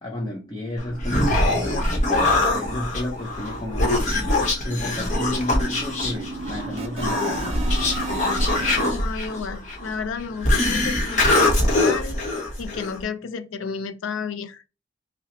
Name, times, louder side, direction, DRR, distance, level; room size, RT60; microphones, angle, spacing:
voice 1, 0.0-4.2 4.6-7.9, left 1 dB, 20° left, 0.5 m, -32 dB
Human voice, 0.8-13.0, left 2 dB, 35° left, 0.9 m, -23 dB
sound 1, 1.6-1.7 2.1-2.2 2.5-2.7 2.9-8.9, right 3 dB, 30° right, 0.4 m, -35 dB
voice 2, 8.9-14.6, left 5 dB, 80° left, 0.4 m, -32 dB
5.5 x 2.0 x 2.9 m
head